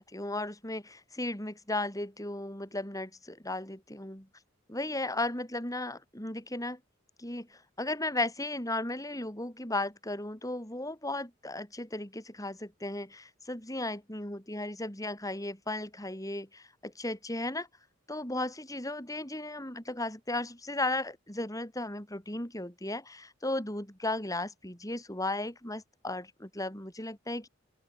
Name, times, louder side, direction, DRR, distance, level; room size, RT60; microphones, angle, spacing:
voice 1, 0.0-4.3 4.7-6.8 7.2-17.7 18.1-27.5, left 2 dB, 15° left, 6.6 m, -35 dB
open air
head